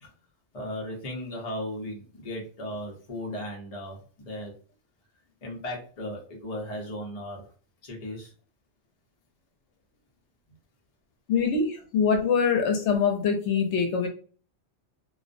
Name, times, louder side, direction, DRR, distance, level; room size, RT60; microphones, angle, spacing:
voice 1, 0.5-4.5 5.4-7.4 7.8-8.3, left 1 dB, 40° left, 0 dB, 0.7 m, -36 dB
voice 2, 11.3-14.1, left 6 dB, 75° left, 3 dB, 0.9 m, -24 dB
2.3 x 2.1 x 2.5 m, 0.39 s
omnidirectional pair, 1.2 m